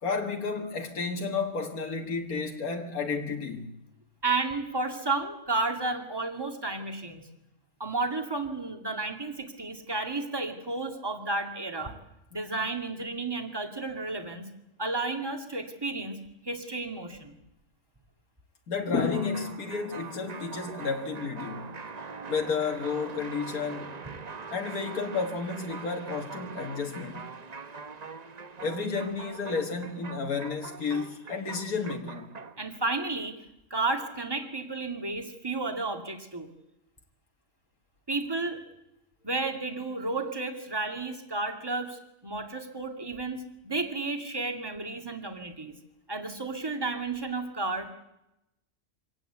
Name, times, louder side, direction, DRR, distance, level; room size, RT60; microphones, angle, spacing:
voice 1, 0.0-3.7 18.7-21.7 22.3-24.0 24.5-27.3 28.6-32.3, left 4 dB, 90° left, 2.2 m, -31 dB
voice 2, 4.2-7.2 7.8-12.0 12.3-14.5 14.8-17.4 32.6-33.4 33.7-36.5 38.1-38.6 39.2-45.7 46.1-47.9, right 3 dB, 15° right, 2.4 m, -32 dB
sound 1, 19.1-32.7, right 5 dB, 35° right, 0.9 m, -42 dB
25.0 x 17.5 x 8.2 m
omnidirectional pair, 1.5 m